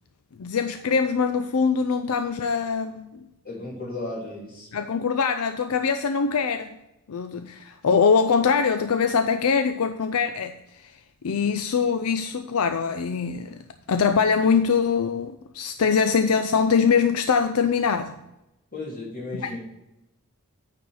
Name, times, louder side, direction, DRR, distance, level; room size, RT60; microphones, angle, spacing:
voice 1, 0.4-3.2 4.7-6.8 7.1-18.2 19.4-19.5, left 5 dB, 80° left, 9 dB, 0.5 m, -23 dB
voice 2, 3.4-4.7 18.7-19.7, left 2 dB, 40° left, -4 dB, 3.6 m, -34 dB
9.4 x 4.4 x 6.3 m, 0.92 s
head